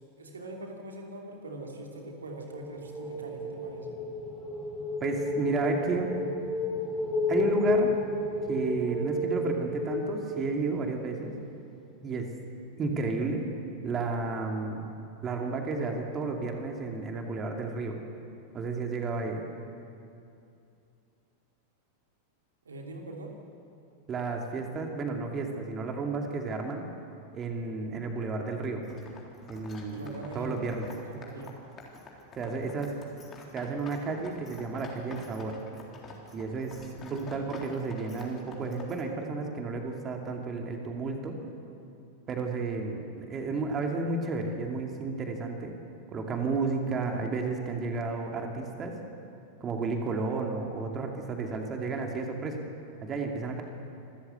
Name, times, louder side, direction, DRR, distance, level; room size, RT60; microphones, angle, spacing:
voice 1, 0.2-3.9 22.6-23.3 29.9-30.6 31.1-31.6 51.8-51.9, right 2 dB, 70° right, 1 dB, 3.1 m, -42 dB
sound 1, 2.3-11.2, left 2 dB, 10° left, 4.3 m, -32 dB
voice 2, 5.0-6.2 7.3-7.9 8.5-11.3 12.0-12.3 12.8-13.5 13.8-14.9 15.2-18.0 18.5-19.4 24.1-26.9 27.3-28.8 29.5-30.9 32.4-33.0 33.5-35.6 36.3-41.4 42.3-45.7 46.1-49.0 49.6-52.6 53.0-53.6, right 3 dB, 25° right, 2 dB, 2.6 m, -32 dB
sound 2, 28.8-39.0, left 3 dB, 25° left, 3.7 m, -49 dB
26.5 x 14.5 x 8.1 m, 2.6 s
figure-of-eight pair, 90°, 0 cm